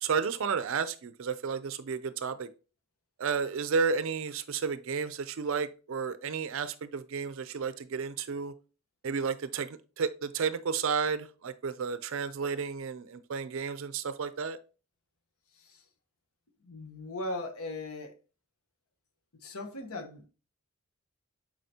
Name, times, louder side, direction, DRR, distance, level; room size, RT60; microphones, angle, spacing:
voice 1, 0.0-2.5 3.2-8.5 9.0-14.6, right 5 dB, 70° right, 0.4 m, -32 dB
voice 2, 16.6-18.1 19.3-20.3, left 2 dB, 90° left, 1.1 m, -38 dB
7.7 x 4.7 x 2.8 m
head